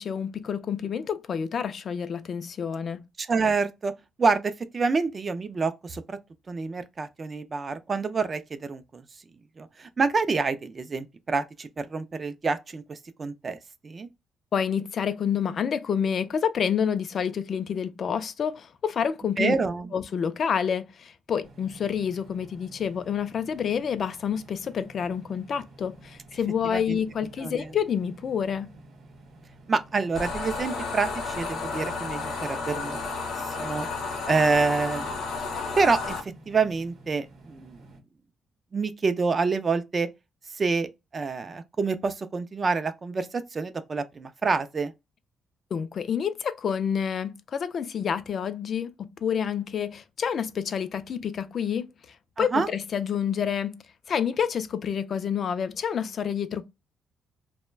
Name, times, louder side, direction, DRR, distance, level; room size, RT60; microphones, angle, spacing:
voice 1, 0.0-3.0 14.5-19.5 19.9-28.7 45.7-51.9 52.4-53.8 54.1-56.6, left 7 dB, 55° left, 0.3 m, -28 dB
voice 2, 3.2-3.9 4.2-6.2 6.5-9.0 9.6-13.6 13.8-14.1 19.4-19.9 26.7-27.0 27.4-27.7 29.7-33.0 33.4-33.9 34.3-35.2 35.8-37.8 38.7-40.1 40.5-44.9 52.4-52.7, right 4 dB, 35° right, 0.3 m, -27 dB
sound 1, 21.4-38.0, right 2 dB, 65° right, 0.7 m, -51 dB
sound 2, 30.2-36.2, left 4 dB, 70° left, 0.7 m, -32 dB
2.2 x 2.1 x 3.1 m
cardioid pair, 90°, 0 cm